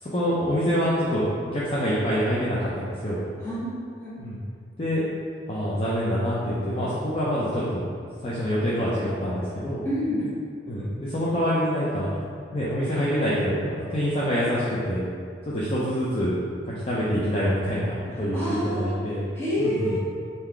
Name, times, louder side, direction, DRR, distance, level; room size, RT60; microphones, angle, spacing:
voice 1, 0.0-1.3 1.5-3.2 4.2-4.4 4.8-5.1 5.5-7.9 8.2-9.9 10.7-12.1 12.5-15.1 15.5-16.4 16.6-19.3 19.6-20.0, equal, 35° left, -9 dB, 0.6 m, -26 dB
voice 2, 9.8-10.3 18.3-18.9 19.3-20.0, equal, 15° left, -11 dB, 1.4 m, -27 dB
3.8 x 2.8 x 4.5 m, 2.2 s
head